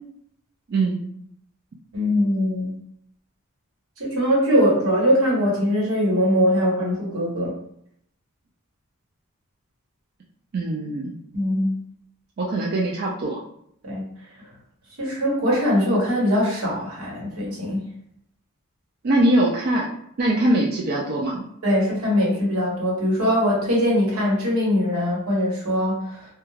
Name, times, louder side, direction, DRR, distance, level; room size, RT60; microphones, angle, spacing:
voice 1, 1.9-2.7 4.0-7.5 11.3-11.8 13.8-14.0 15.0-17.9 21.6-26.2, equal, 80° right, -4 dB, 1.1 m, -21 dB
voice 2, 10.5-11.2 12.4-13.4 19.0-19.9 20.2-21.5, right 1 dB, 45° right, -3 dB, 0.3 m, -22 dB
2.3 x 2.2 x 3.1 m, 0.70 s
head